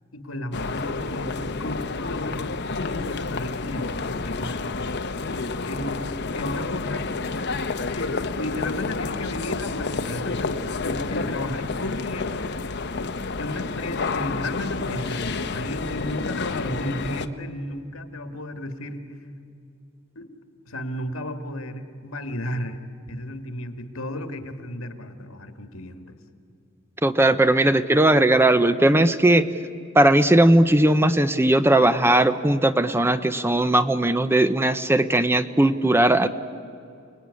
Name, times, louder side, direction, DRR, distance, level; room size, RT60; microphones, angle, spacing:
voice 1, 0.1-4.6 5.7-6.0 6.4-7.0 7.9-12.5 13.4-19.1 20.2-20.3 20.7-22.8 23.1-26.1, left 1 dB, 80° left, 7 dB, 2.1 m, -33 dB
sound 1, 0.5-17.3, left 3 dB, 55° left, 1.0 m, -30 dB
voice 2, 27.0-29.5 29.9-36.3, right 1 dB, 10° right, 11 dB, 0.7 m, -18 dB
29.0 x 19.5 x 9.7 m, 2.5 s
head